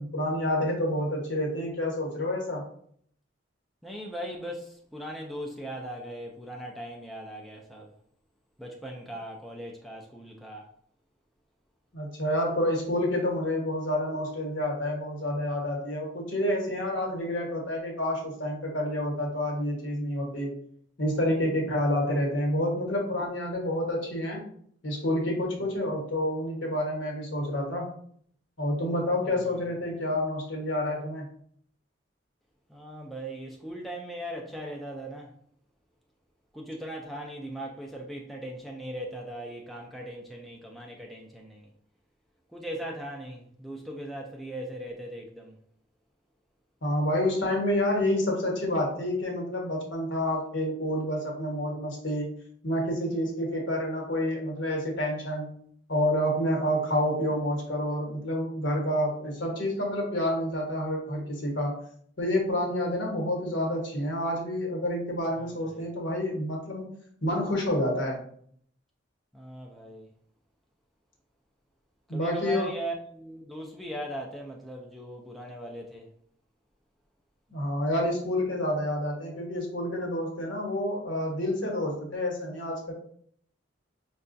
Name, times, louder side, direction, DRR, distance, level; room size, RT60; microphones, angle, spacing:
voice 1, 0.0-2.6 11.9-20.5 21.0-24.4 24.8-27.9 28.6-31.3 46.8-52.3 52.6-55.5 55.9-61.8 62.2-66.9 67.2-68.2 72.1-72.7 77.5-82.9, left 1 dB, 70° left, 1.2 m, -28 dB
voice 2, 3.8-7.9 8.6-10.7 29.3-29.6 32.7-35.3 36.5-41.7 42.5-45.6 65.4-65.8 69.3-70.1 72.1-76.1, right 1 dB, ahead, 0.3 m, -39 dB
5.3 x 2.3 x 2.5 m
head